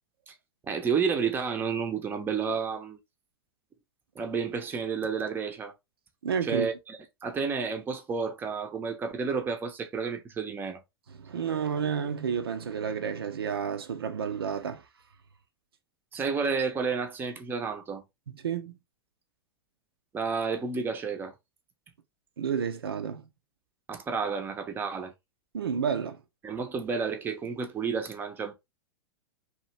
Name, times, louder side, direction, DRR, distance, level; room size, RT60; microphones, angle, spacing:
voice 1, 0.6-3.0 4.2-5.7 6.4-10.8 16.1-18.0 20.1-21.3 23.9-25.1 26.4-28.5, right 5 dB, 15° right, 0.6 m, -31 dB
voice 2, 6.2-6.7 11.2-14.8 16.1-16.2 18.3-18.8 22.4-23.3 25.5-26.2, right 7 dB, 70° right, 0.5 m, -31 dB
2.8 x 2.5 x 3.0 m
figure-of-eight pair, 100°, 13 cm